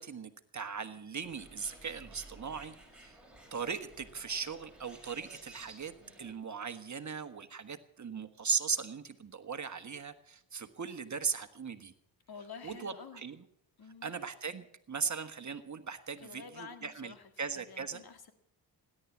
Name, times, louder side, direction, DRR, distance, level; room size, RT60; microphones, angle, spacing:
voice 1, 0.0-3.2 3.5-11.9 12.6-13.5 14.0-18.0, right 6 dB, 40° right, 9 dB, 1.5 m, -38 dB
Bird, 1.2-6.3, right 1 dB, ahead, 6.4 m, -55 dB
voice 2, 12.3-13.3 13.8-14.1 16.2-18.3, left 5 dB, 55° left, 8 dB, 2.0 m, -49 dB
17.5 x 11.0 x 7.3 m, 0.72 s
cardioid pair, 65°, 45 cm